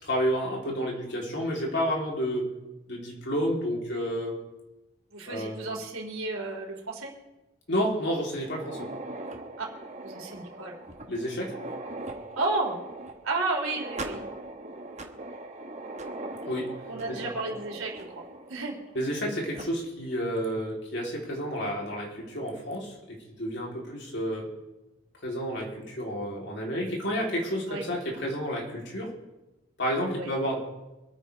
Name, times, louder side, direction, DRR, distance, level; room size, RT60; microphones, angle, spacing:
voice 1, 0.0-2.4 2.9-4.4 5.2-5.6 7.7-8.9 11.1-11.5 16.5-16.7 17.1-17.2 18.9-24.5 25.2-29.1 29.8-30.6, equal, 55° left, -2 dB, 3.5 m, -30 dB
voice 2, 5.1-7.1 9.6-9.7 10.0-10.8 12.4-12.8 13.2-14.3 16.9-18.8 27.7-27.8 30.2-30.3, right 3 dB, 85° right, 0 dB, 3.0 m, -32 dB
sound 1, 8.4-19.2 19.5-19.6 20.4-20.5 21.1-21.2 22.5-22.8, right 2 dB, 35° right, 1.1 m, -41 dB
25.0 x 9.2 x 3.5 m, 1.0 s
head